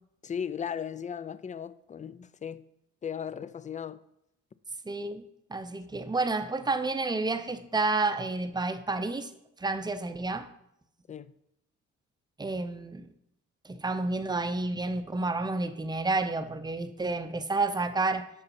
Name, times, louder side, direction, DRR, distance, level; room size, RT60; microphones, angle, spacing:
voice 1, 0.2-2.6 3.0-4.0 11.1-11.3, left 8 dB, 25° left, 0.4 m, -36 dB
voice 2, 4.9-5.2 5.5-9.3 9.6-10.5 12.4-13.1 13.6-18.3, right 3 dB, 15° right, 0.6 m, -30 dB
6.6 x 5.6 x 5.9 m
cardioid pair, 90°, 30 cm